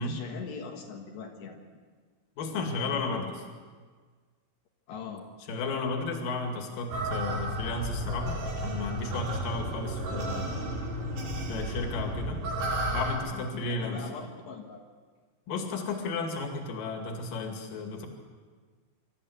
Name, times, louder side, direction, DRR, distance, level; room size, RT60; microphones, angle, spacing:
voice 1, 0.0-1.6 2.9-3.2 4.9-5.3 13.3-14.8, left 6 dB, 85° left, 1 dB, 3.8 m, -41 dB
voice 2, 2.4-3.4 5.5-10.6 11.5-12.4 12.9-14.0 15.5-18.1, left 3 dB, 60° left, 3 dB, 3.8 m, -33 dB
sound 1, 6.9-13.2, right 1 dB, 80° right, 5.5 m, -32 dB
26.0 x 13.5 x 8.2 m, 1.6 s
omnidirectional pair, 4.8 m